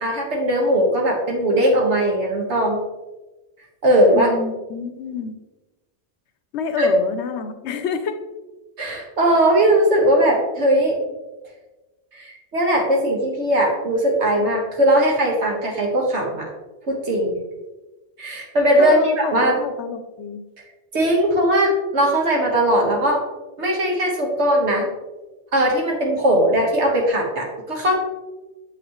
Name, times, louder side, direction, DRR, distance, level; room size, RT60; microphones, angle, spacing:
voice 1, 0.0-2.8 3.8-4.3 6.8-6.9 8.8-11.0 12.1-16.5 16.9-17.3 18.2-19.6 20.9-23.2 23.6-24.9 25.5-27.9, right 1 dB, 80° right, -1 dB, 1.7 m, -19 dB
voice 2, 4.1-5.4 6.5-8.2 18.8-20.4, left 6 dB, 80° left, 9 dB, 0.9 m, -28 dB
7.0 x 5.9 x 3.0 m, 1.1 s
omnidirectional pair, 1.2 m